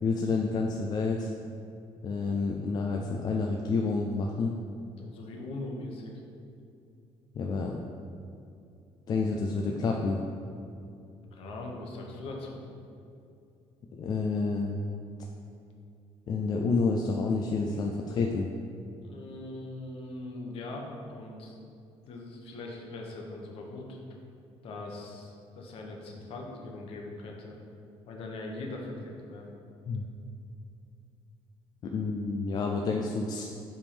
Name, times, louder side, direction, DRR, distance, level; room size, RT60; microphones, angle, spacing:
voice 1, 0.0-1.3 2.0-4.5 7.3-7.8 9.1-10.2 13.9-14.8 16.3-18.5 29.9-30.0 31.8-33.4, left 4 dB, 40° left, 1 dB, 0.4 m, -29 dB
voice 2, 5.0-6.1 11.2-12.6 19.0-21.6 22.1-24.0 24.6-27.6 28.1-29.5, left 2 dB, 55° left, 0 dB, 1.0 m, -41 dB
7.7 x 3.6 x 5.1 m, 2.6 s
cardioid pair, 175°, 11 cm